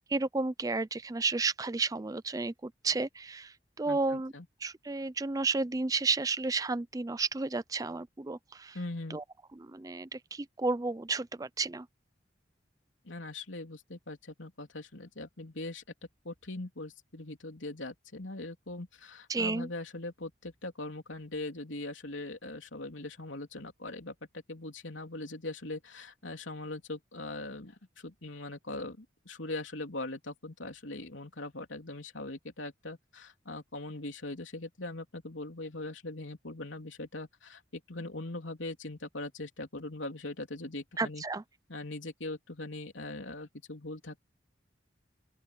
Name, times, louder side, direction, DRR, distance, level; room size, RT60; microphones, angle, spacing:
voice 1, 0.0-4.3 4.6-8.8 9.1-9.2 9.6-11.9 19.3-19.7 41.0-41.4, right 3 dB, 20° right, 0.4 m, -32 dB
voice 2, 3.9-4.4 8.7-9.2 13.0-15.8 16.2-41.2 41.7-44.2, left 2 dB, 90° left, 3.5 m, -41 dB
open air
head